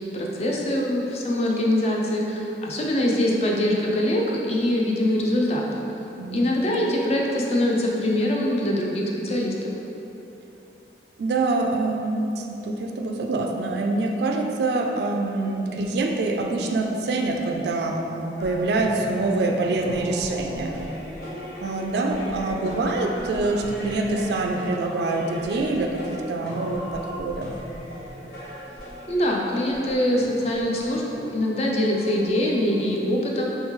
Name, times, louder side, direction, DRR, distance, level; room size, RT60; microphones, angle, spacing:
voice 1, 0.1-5.7 6.3-9.5 29.1-31.0 31.3-33.5, left 1 dB, 35° left, -2 dB, 0.4 m, -23 dB
voice 2, 11.2-20.8 21.6-27.5, right 2 dB, 70° right, 2 dB, 0.3 m, -25 dB
sound 1, 18.4-32.9, equal, 60° left, 0.8 m, -38 dB
3.1 x 3.1 x 3.6 m, 3.0 s
head